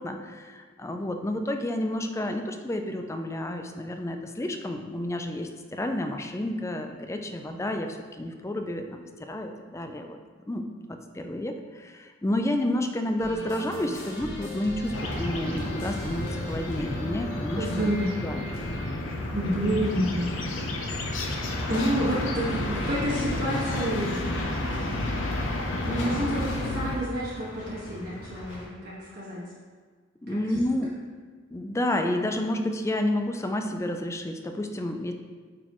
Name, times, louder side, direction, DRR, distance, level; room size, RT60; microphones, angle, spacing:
voice 1, 0.0-10.2 10.5-17.9 18.2-18.4 30.2-30.9 31.5-35.1, left 1 dB, 15° left, 5 dB, 0.4 m, -30 dB
sound 1, 13.2-18.9, equal, 45° left, 1.5 m, -39 dB
sound 2, 14.9-27.0, left 1 dB, 85° left, 0.8 m, -31 dB
voice 2, 17.5-18.1 19.3-21.0 21.7-24.3 25.9-29.4, equal, 55° right, -7 dB, 1.6 m, -29 dB
sound 3, 19.1-28.7, equal, 70° left, 1.6 m, -43 dB
8.9 x 4.1 x 3.0 m, 1.5 s
head